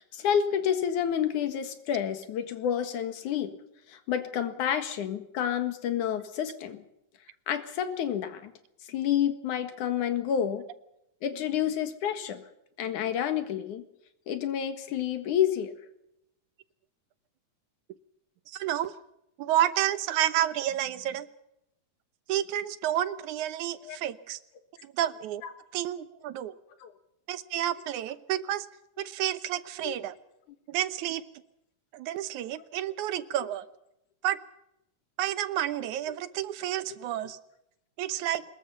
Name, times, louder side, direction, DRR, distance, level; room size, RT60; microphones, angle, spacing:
voice 1, 0.0-3.5 3.9-6.8 7.5-8.5 8.9-10.6 11.2-12.4 12.8-13.8 14.3-15.7 23.8-24.0 26.8-26.9 29.8-29.9, left 9 dB, 90° left, 9 dB, 3.2 m, -29 dB
voice 2, 18.5-19.0 19.4-21.3 22.3-24.4 24.8-25.4 25.7-26.6 27.3-28.7 29.0-30.2 30.7-31.2 31.9-33.7 34.2-34.4 35.2-37.4 38.0-38.4, right 12 dB, 85° right, 14 dB, 2.4 m, -30 dB
24.5 x 21.0 x 5.7 m, 0.82 s
omnidirectional pair, 3.4 m